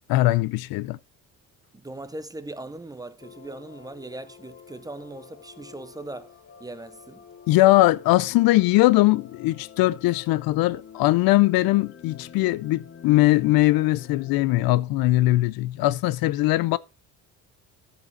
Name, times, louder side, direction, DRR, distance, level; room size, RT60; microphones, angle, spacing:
voice 1, 0.1-1.0 7.5-16.8, left 18 dB, 75° left, 0.5 m, -20 dB
voice 2, 1.7-6.3 6.6-7.3, right 2 dB, 10° right, 0.5 m, -39 dB
sound 1, 3.2-14.7, left 7 dB, 35° left, 0.9 m, -48 dB
13.5 x 5.7 x 3.9 m
cardioid pair, 150°, 36 cm